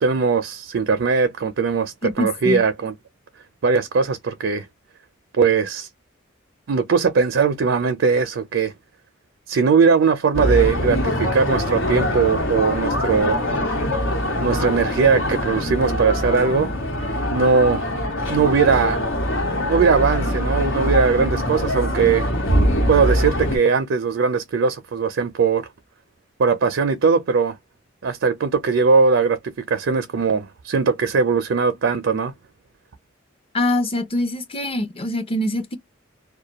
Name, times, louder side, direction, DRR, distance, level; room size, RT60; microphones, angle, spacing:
voice 1, 0.0-2.9 3.6-4.7 5.3-5.9 6.7-8.7 9.5-13.4 14.4-16.7 17.3-17.9 18.2-19.0 19.7-22.3 22.9-25.7 26.4-27.6 28.0-32.3, right 5 dB, 70° right, 0.5 m, -20 dB
voice 2, 2.0-2.6 33.5-35.8, left 1 dB, 30° left, 0.6 m, -24 dB
sound 1, 10.3-23.6, equal, 75° left, 1.1 m, -23 dB
2.2 x 2.2 x 2.8 m
head